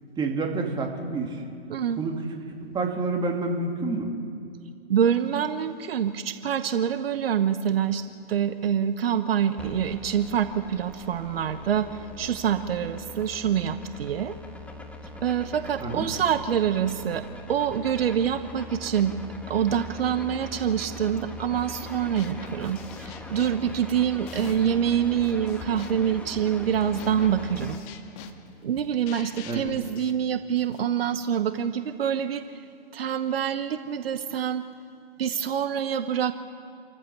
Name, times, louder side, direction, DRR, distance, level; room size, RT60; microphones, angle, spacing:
voice 1, 0.2-1.4 2.0-2.3 2.7-4.1 15.8-16.1 29.5-29.6, right 3 dB, 15° right, 2 dB, 2.4 m, -28 dB
voice 2, 1.7-2.0 4.9-14.3 15.2-17.2 17.5-19.2 19.5-27.8 28.6-32.4 32.9-34.6 35.2-36.3, right 8 dB, 60° right, 10 dB, 1.0 m, -26 dB
sound 1, 9.6-27.8, left 1 dB, 5° left, 1.3 m, -42 dB
sound 2, 21.6-21.9 22.2-24.8 25.1-30.9, left 6 dB, 35° left, 2.0 m, -44 dB
27.5 x 14.5 x 7.0 m, 2.5 s
hypercardioid pair, 130°, 33 cm